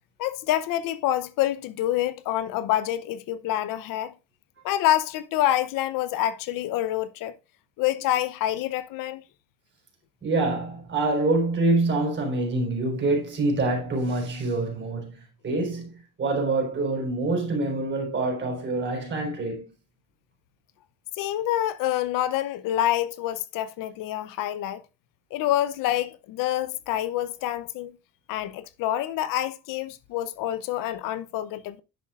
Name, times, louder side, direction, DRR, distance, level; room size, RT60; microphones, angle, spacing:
voice 1, 0.2-4.1 4.6-7.3 7.8-9.2 21.2-24.8 25.3-27.9 28.3-31.8, left 13 dB, 75° left, 0.8 m, -27 dB
voice 2, 10.2-15.9 16.2-19.6, right 2 dB, 35° right, 4.2 m, -26 dB
10.5 x 7.2 x 2.5 m
cardioid pair, 120°, 34 cm